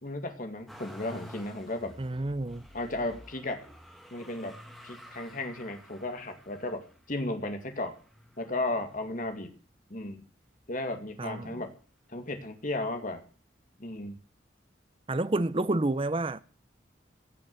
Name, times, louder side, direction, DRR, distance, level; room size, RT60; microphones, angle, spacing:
voice 1, 0.0-1.9 2.7-3.6 4.1-4.6 4.8-7.9 8.4-9.5 9.9-10.2 10.7-11.7 12.1-13.2 13.8-14.2, left 2 dB, 45° left, 2.2 m, -34 dB
Motor vehicle (road), 0.7-9.8 10.4-11.2 11.5-12.6 13.6-13.7, equal, ahead, 2.2 m, -51 dB
voice 2, 2.0-2.6 11.2-11.6 15.1-16.4, right 2 dB, 30° right, 0.7 m, -29 dB
16.0 x 6.2 x 9.5 m
head